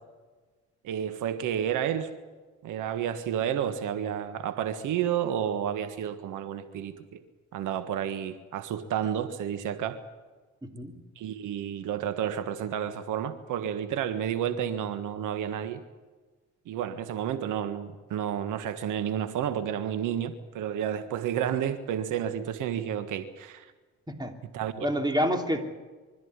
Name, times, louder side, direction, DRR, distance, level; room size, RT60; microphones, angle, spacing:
voice 1, 0.8-2.1 2.6-7.2 7.5-10.0 11.2-15.8 16.7-23.7 24.5-24.8, right 9 dB, 85° right, 10 dB, 1.6 m, -31 dB
voice 2, 10.6-10.9 24.1-24.3 24.8-25.7, equal, 15° right, 5 dB, 3.2 m, -28 dB
25.0 x 13.5 x 9.7 m, 1.3 s
cardioid pair, 90°, 30 cm